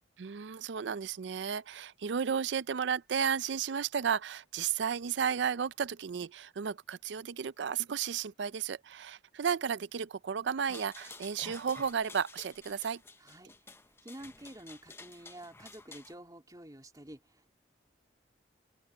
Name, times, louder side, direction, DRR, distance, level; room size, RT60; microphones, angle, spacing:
voice 1, 0.2-13.0, right 7 dB, 70° right, 0.4 m, -33 dB
sound 1, 10.6-16.1, left 3 dB, 15° left, 0.7 m, -51 dB
voice 2, 13.2-17.5, right 1 dB, 20° right, 3.0 m, -50 dB
open air
head